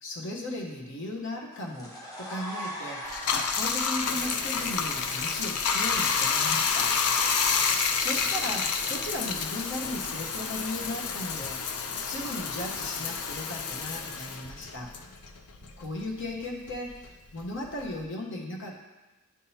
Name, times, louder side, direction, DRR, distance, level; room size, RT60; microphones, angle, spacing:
voice 1, 0.0-3.0 3.3-7.0 8.0-11.7 12.0-14.9 15.6-18.8, left 1 dB, 60° left, 0 dB, 1.0 m, -36 dB
sound 1, 1.5-10.9, equal, 15° left, 0.9 m, -44 dB
Bathtub (filling or washing), 3.1-15.9 16.2-18.0, left 5 dB, 90° left, 0.5 m, -29 dB
10.0 x 3.8 x 2.8 m, 1.1 s
head